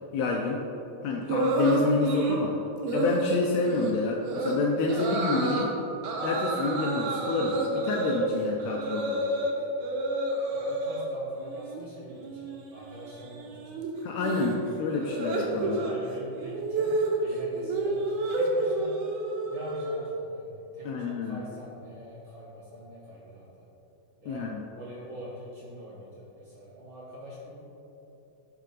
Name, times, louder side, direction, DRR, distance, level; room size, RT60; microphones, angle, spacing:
voice 1, 0.1-0.6 1.0-2.6 2.9-5.7 6.2-9.2 14.0-15.8 20.8-21.4 24.3-24.6, left 3 dB, 80° left, 1 dB, 1.6 m, -28 dB
sound 1, 1.3-2.4 2.8-3.2 3.6-3.9 4.3-4.6 4.9-5.7 6.0-9.5 9.8-11.1 11.4-11.8 12.1-20.3, right 2 dB, 80° right, 2.2 m, -30 dB
voice 2, 10.5-13.8 15.6-18.9 19.5-23.6 24.2-27.7, equal, 55° right, -7 dB, 1.5 m, -44 dB
10.0 x 4.3 x 3.9 m, 2.8 s
omnidirectional pair, 3.5 m